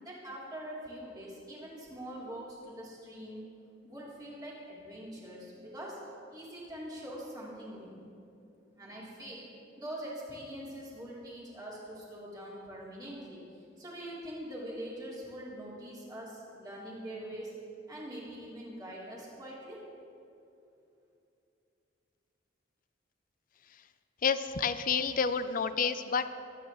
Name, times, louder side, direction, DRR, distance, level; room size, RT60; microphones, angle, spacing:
voice 1, 0.0-3.4 3.8-6.0 6.3-8.0 8.8-9.5 9.8-17.5 17.9-19.8, equal, 20° right, -7 dB, 3.3 m, -43 dB
voice 2, 24.2-26.3, left 6 dB, 45° left, 12 dB, 0.5 m, -29 dB
23.5 x 9.0 x 3.1 m, 2.7 s
head